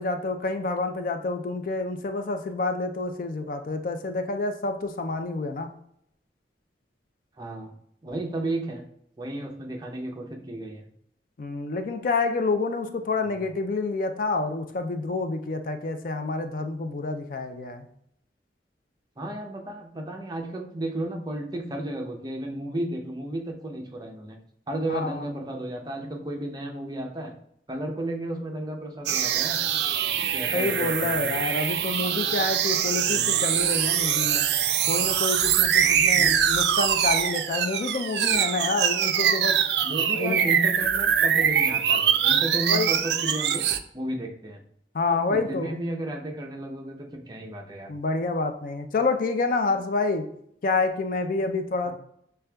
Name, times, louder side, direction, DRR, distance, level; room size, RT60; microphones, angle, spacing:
voice 1, 0.0-5.7 11.4-17.9 24.9-25.2 30.5-34.5 34.9-39.6 40.1-40.5 42.7-42.9 44.9-45.7 47.9-50.2 50.6-51.9, left 3 dB, 50° left, 7 dB, 0.4 m, -28 dB
voice 2, 7.4-7.7 8.0-8.8 9.2-10.9 13.3-13.4 19.2-24.4 24.7-27.3 27.7-29.6 30.3-31.3 33.0-33.4 35.8-36.3 39.8-43.6 43.9-44.6 45.1-47.9 51.8-51.9, right 1 dB, 25° right, 2 dB, 0.6 m, -33 dB
sound 1, 29.1-43.8, right 8 dB, 70° right, 0.3 m, -23 dB
6.4 x 3.3 x 2.2 m, 0.70 s
head